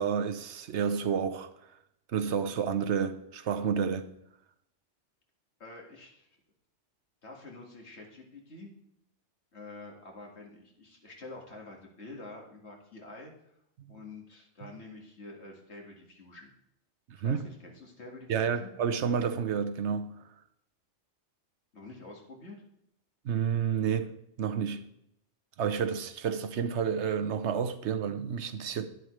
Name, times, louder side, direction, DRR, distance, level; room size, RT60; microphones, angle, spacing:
voice 1, 0.0-1.7 2.1-4.1 13.8-14.0 14.6-14.7 17.2-17.4 18.3-20.2 23.2-24.8 25.6-28.9, right 7 dB, 75° right, 1.0 m, -30 dB
voice 2, 5.6-6.3 7.2-8.7 9.5-13.6 13.9-16.5 17.2-18.7 21.7-22.6, left 2 dB, 65° left, 2.2 m, -47 dB
11.0 x 10.5 x 3.2 m
omnidirectional pair, 1.2 m